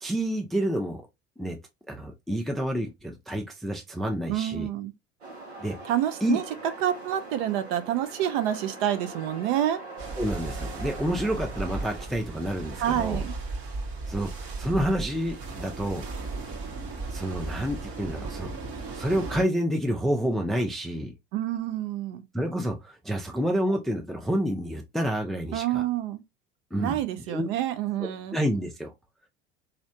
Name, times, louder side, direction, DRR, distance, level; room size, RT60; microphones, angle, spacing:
voice 1, 0.0-1.0 1.4-1.6 1.9-4.7 5.6-5.8 6.2-6.4 10.2-13.2 14.1-16.1 17.1-18.5 18.9-21.1 22.3-25.8 26.7-27.0 27.3-27.5 28.0-28.9, equal, ahead, 0.5 m, -29 dB
voice 2, 4.3-4.9 5.8-6.4 6.8-9.8 12.8-13.3 21.3-22.2 25.5-26.2 26.8-28.4, right 11 dB, 60° right, 0.6 m, -28 dB
sound 1, 5.2-12.1, right 3 dB, 90° right, 1.2 m, -42 dB
sound 2, 10.0-19.4, right 3 dB, 45° right, 1.1 m, -36 dB
3.1 x 2.7 x 2.7 m
hypercardioid pair, 75°, 31 cm